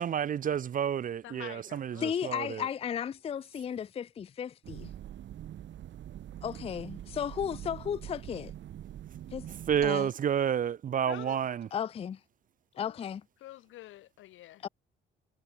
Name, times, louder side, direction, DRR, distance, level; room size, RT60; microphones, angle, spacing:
voice 1, 0.0-2.6 9.7-11.7, right 9 dB, 45° right, 0.5 m, -30 dB
voice 2, 1.2-2.1 11.1-11.4 12.7-13.1 13.4-14.6, left 14 dB, 80° left, 1.3 m, -47 dB
voice 3, 2.0-4.9 6.4-8.5 9.3-9.5 9.8-10.1 11.7-12.2 12.8-13.2 14.6-14.7, left 8 dB, 30° left, 0.4 m, -34 dB
sound 1, 4.6-9.9, right 11 dB, 70° right, 1.6 m, -44 dB
cardioid pair, 90°, 20 cm